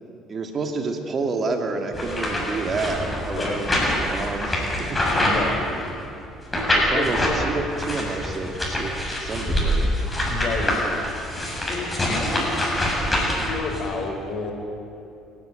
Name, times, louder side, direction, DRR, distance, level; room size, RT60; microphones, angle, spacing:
voice 1, 0.3-5.0 6.7-8.9 9.2-10.0, right 3 dB, 40° right, 4 dB, 2.5 m, -29 dB
sound 1, 1.9-6.0 6.5-7.4 7.8-13.8, left 1 dB, 15° left, 7.3 m, -25 dB
voice 2, 3.3-3.6 5.2-5.6 6.9-7.0 10.3-10.8 11.7-12.6 13.3-14.5, left 4 dB, 50° left, 2 dB, 5.0 m, -30 dB
28.0 x 11.0 x 9.2 m, 2.7 s
supercardioid pair, 80°, 0 cm